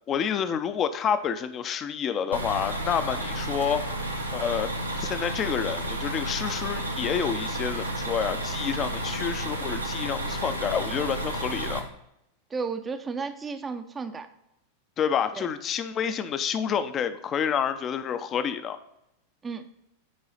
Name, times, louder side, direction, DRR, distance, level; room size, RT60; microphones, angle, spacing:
voice 1, 0.1-3.8 4.3-4.7 5.0-11.8 15.0-18.8, left 8 dB, 30° left, 11 dB, 0.6 m, -28 dB
sound 1, 2.3-11.8, right 1 dB, 85° right, 1.1 m, -31 dB
voice 2, 12.5-14.3 15.4-15.5 19.4-19.7, right 5 dB, 20° right, 8 dB, 0.6 m, -33 dB
9.6 x 4.8 x 3.9 m, 0.82 s
figure-of-eight pair, 90°, 0 cm